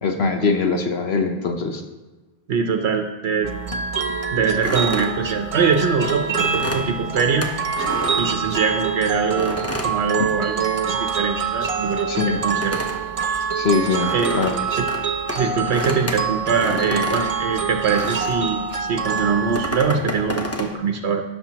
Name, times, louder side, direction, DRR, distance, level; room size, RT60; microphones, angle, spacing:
voice 1, 0.0-1.8 12.1-12.4 13.5-14.6, left 4 dB, 70° left, 4 dB, 1.2 m, -22 dB
voice 2, 2.5-3.5 4.3-7.5 8.2-9.6 9.8-12.8 14.1-14.4 14.8-14.9 15.3-21.2, right 5 dB, 85° right, 4 dB, 1.0 m, -23 dB
sound 1, 3.4-19.8, right 5 dB, 40° right, 0.6 m, -26 dB
sound 2, 4.6-8.9 9.4-10.9 11.1-18.5 19.1-20.8, equal, 15° left, 0.9 m, -30 dB
16.5 x 6.8 x 2.9 m, 1.2 s
omnidirectional pair, 1.1 m